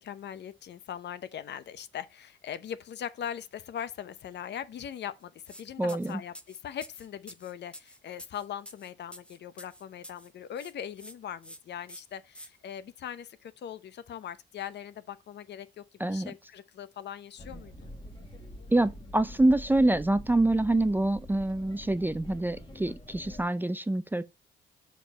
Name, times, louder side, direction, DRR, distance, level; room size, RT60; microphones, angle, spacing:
voice 1, 0.0-17.9, left 9 dB, 60° left, 0.7 m, -40 dB
sound 1, 5.5-5.6 5.9-10.3 10.6-11.1 11.4-11.6 11.9-12.5, equal, 5° left, 1.0 m, -48 dB
voice 2, 5.8-6.2 16.0-16.3 18.7-24.2, right 2 dB, 10° right, 0.4 m, -26 dB
sound 2, 17.4-23.4, left 1 dB, 25° left, 1.8 m, -45 dB
5.1 x 4.4 x 5.4 m
cardioid pair, 90°, 20 cm